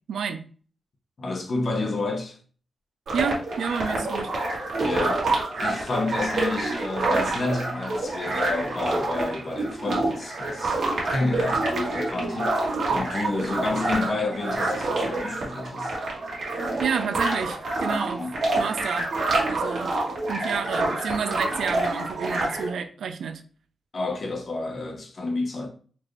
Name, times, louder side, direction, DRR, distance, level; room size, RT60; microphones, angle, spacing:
voice 1, 0.1-0.5 3.1-4.3 16.8-18.2 18.6-19.1 19.4-19.9 20.3-23.4, right 6 dB, 85° right, 0.4 m, -30 dB
voice 2, 1.2-2.4 4.8-10.8 11.1-16.0 18.2-18.3 23.9-25.7, left 2 dB, 45° left, 0.9 m, -30 dB
sound 1, 3.1-22.7, right 2 dB, 70° right, 1.5 m, -27 dB
4.4 x 2.5 x 3.1 m
wide cardioid pair, 105°, 0 cm